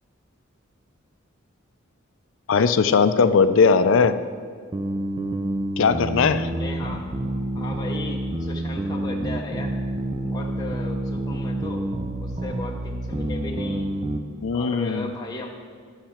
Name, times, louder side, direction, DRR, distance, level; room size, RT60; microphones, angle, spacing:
voice 1, 2.5-4.2 5.8-6.5 14.4-15.1, left 5 dB, 65° left, 11 dB, 0.4 m, -19 dB
sound 1, 4.7-14.2, right 1 dB, 25° right, 0.5 m, -28 dB
voice 2, 6.5-7.1 7.5-9.7 10.2-11.9 12.2-13.9 14.5-15.5, left 2 dB, 20° left, -1 dB, 0.6 m, -35 dB
11.5 x 6.6 x 4.4 m, 2.1 s
head